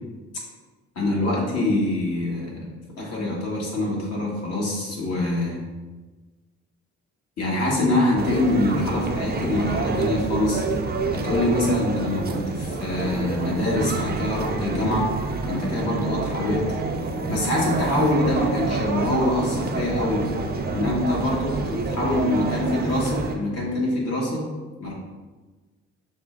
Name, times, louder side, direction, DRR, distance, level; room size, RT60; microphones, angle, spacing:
voice 1, 0.9-2.7 3.0-5.6 7.4-10.6 11.1-15.1 15.4-16.7 17.0-20.3 20.7-24.5 24.8-24.9, left 1 dB, 55° left, -3 dB, 1.5 m, -24 dB
sound 1, 8.2-23.3, right 3 dB, 30° right, 0.5 m, -28 dB
5.9 x 2.1 x 3.7 m, 1.3 s
cardioid pair, 90°, 30 cm